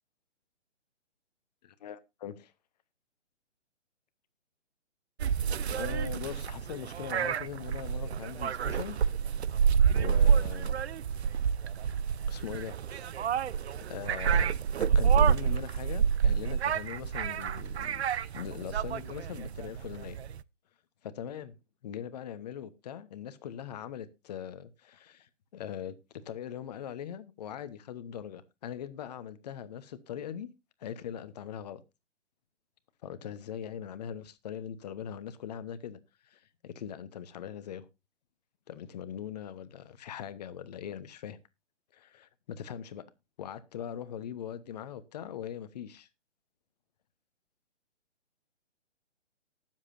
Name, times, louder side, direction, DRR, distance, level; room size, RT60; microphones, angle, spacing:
voice 1, 1.6-2.5 5.7-9.1 9.9-10.7 12.3-12.8 13.9-18.0 18.3-20.2 21.0-21.6 21.8-30.5 30.8-31.8 33.0-36.0 36.2-37.9 38.7-41.4 41.9-43.0 43.4-46.1, left 9 dB, 35° left, 1.0 m, -41 dB
sound 1, 5.2-20.4, right 7 dB, 65° right, 0.6 m, -28 dB
19.0 x 7.5 x 2.6 m
figure-of-eight pair, 140°, 35 cm